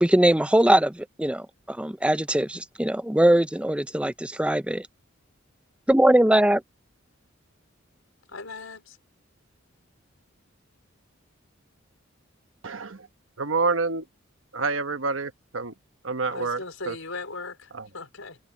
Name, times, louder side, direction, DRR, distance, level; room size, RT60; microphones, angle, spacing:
voice 1, 0.0-4.9 5.9-6.6, right 1 dB, 5° right, 0.5 m, -21 dB
voice 2, 8.3-9.0 16.3-18.4, left 3 dB, 90° left, 5.0 m, -38 dB
voice 3, 12.6-13.1 13.4-14.1 14.5-15.7 16.0-17.0 17.7-17.9, right 4 dB, 75° right, 1.2 m, -28 dB
head